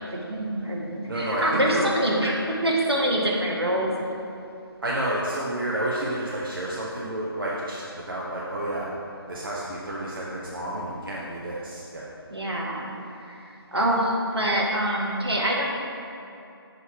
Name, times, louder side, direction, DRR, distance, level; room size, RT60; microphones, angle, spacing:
voice 1, 0.2-3.9 12.3-12.9 13.3-13.4 13.7-15.6, right 1 dB, 80° right, -3 dB, 1.3 m, -25 dB
voice 2, 1.1-1.9 4.8-8.9 9.3-12.1, right 1 dB, 60° right, -5 dB, 0.9 m, -30 dB
6.5 x 4.0 x 4.7 m, 2.6 s
figure-of-eight pair, 155°, 13 cm